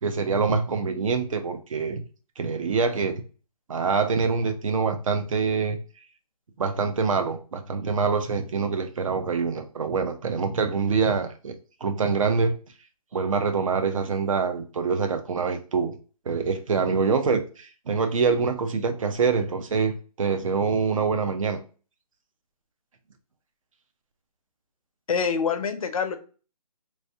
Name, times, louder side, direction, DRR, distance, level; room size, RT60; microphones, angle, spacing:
voice 1, 0.0-2.0 2.4-3.2 3.7-5.8 6.6-11.5 11.8-12.5 13.1-16.0 16.3-21.6, right 5 dB, 55° right, 7 dB, 0.6 m, -25 dB
voice 2, 25.1-26.2, left 6 dB, 60° left, 8 dB, 0.6 m, -25 dB
3.3 x 3.1 x 2.7 m, 0.37 s
hypercardioid pair, 160°, 20 cm